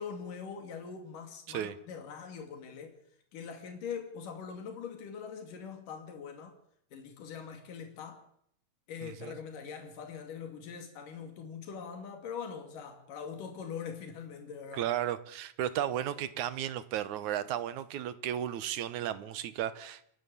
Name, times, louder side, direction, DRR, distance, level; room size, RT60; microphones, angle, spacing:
voice 1, 0.0-3.0 3.3-6.5 6.9-8.2 8.9-14.9, left 6 dB, 85° left, 4.0 m, -42 dB
voice 2, 9.0-9.3 14.7-20.0, right 11 dB, 70° right, 2.4 m, -34 dB
29.0 x 11.5 x 8.3 m
omnidirectional pair, 3.6 m